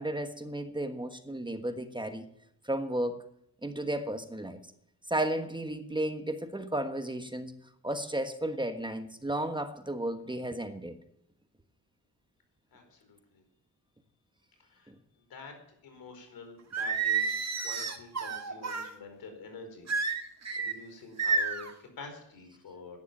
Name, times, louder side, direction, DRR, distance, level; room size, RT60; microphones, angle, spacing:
voice 1, 0.0-2.3 2.6-3.2 3.6-4.6 5.1-7.5 7.8-11.0 14.9-15.0, right 1 dB, 15° right, 1.4 m, -33 dB
voice 2, 12.7-13.4 14.6-14.9 15.3-15.5 15.8-17.3 17.6-19.9 20.6-23.0, left 4 dB, 75° left, 4.8 m, -47 dB
Singing, 16.7-18.9 19.9-20.7 21.2-21.7, right 5 dB, 45° right, 2.0 m, -30 dB
12.0 x 10.5 x 8.8 m
cardioid pair, 70°, 36 cm